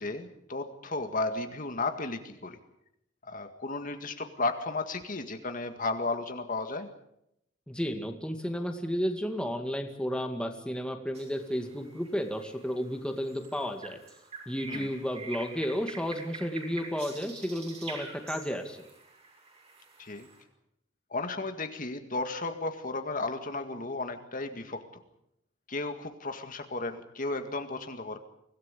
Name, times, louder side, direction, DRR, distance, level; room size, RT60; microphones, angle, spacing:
voice 1, 0.0-2.6 3.2-6.9 14.7-14.9 20.0-20.3 21.1-24.9 25.7-28.2, left 3 dB, 45° left, 7 dB, 2.0 m, -34 dB
voice 2, 7.7-14.0 14.5-18.9, equal, 5° left, 4 dB, 2.1 m, -32 dB
sound 1, 11.1-20.4, right 4 dB, 35° right, 5.9 m, -46 dB
25.0 x 17.0 x 8.4 m, 0.79 s
head